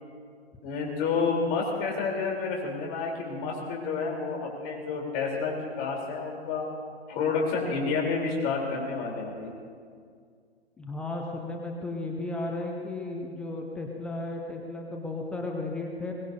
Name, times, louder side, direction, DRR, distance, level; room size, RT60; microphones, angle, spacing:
voice 1, 0.6-6.7 7.1-9.5, left 4 dB, 30° left, -1 dB, 3.6 m, -29 dB
voice 2, 10.8-16.1, left 2 dB, 5° left, 0 dB, 0.4 m, -34 dB
22.0 x 19.5 x 2.7 m, 2.1 s
hypercardioid pair, 130°, 33 cm